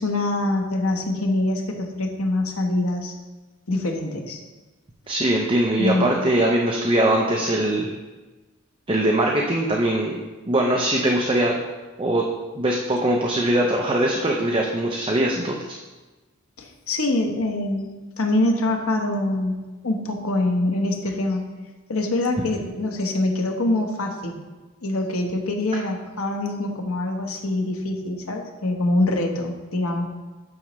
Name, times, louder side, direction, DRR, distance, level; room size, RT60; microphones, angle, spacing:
voice 1, 0.0-3.1 3.7-4.4 5.8-6.1 16.6-17.9 18.2-21.5 21.9-24.4 24.8-30.1, left 2 dB, 85° left, 2 dB, 1.0 m, -24 dB
voice 2, 5.1-7.9 8.9-10.2 10.5-11.6 12.0-12.3 12.5-15.6, right 1 dB, 25° right, 0 dB, 0.6 m, -21 dB
8.6 x 6.2 x 3.1 m, 1.2 s
head